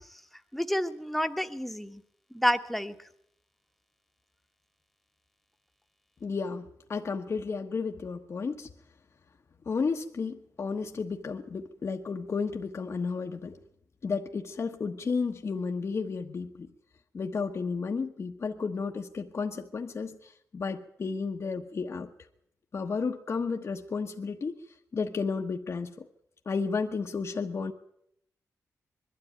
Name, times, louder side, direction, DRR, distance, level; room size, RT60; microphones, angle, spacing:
voice 1, 0.5-2.0 2.3-2.9, equal, ahead, 6 dB, 1.3 m, -29 dB
voice 2, 6.2-8.7 9.7-13.6 14.0-16.7 17.1-22.1 22.7-24.6 24.9-26.1 26.4-27.7, left 5 dB, 50° left, 3 dB, 1.2 m, -32 dB
22.0 x 13.0 x 9.3 m, 0.73 s
cardioid pair, 90°, 6 cm